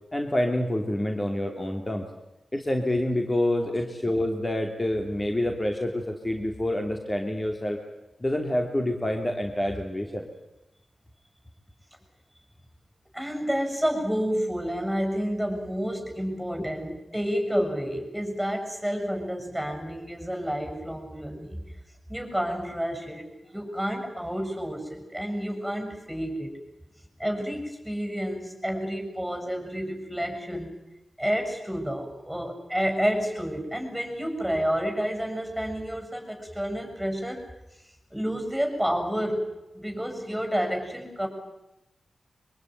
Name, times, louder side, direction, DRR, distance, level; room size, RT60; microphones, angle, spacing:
voice 1, 0.1-2.1 2.5-7.8 8.2-10.3, left 1 dB, 25° left, 3 dB, 3.0 m, -27 dB
voice 2, 13.1-21.6 22.1-26.5 27.2-30.8 31.2-37.5 38.1-39.5 39.7-41.3, equal, ahead, 3 dB, 7.3 m, -30 dB
24.0 x 23.0 x 9.4 m, 0.93 s
cardioid pair, 65°, 0 cm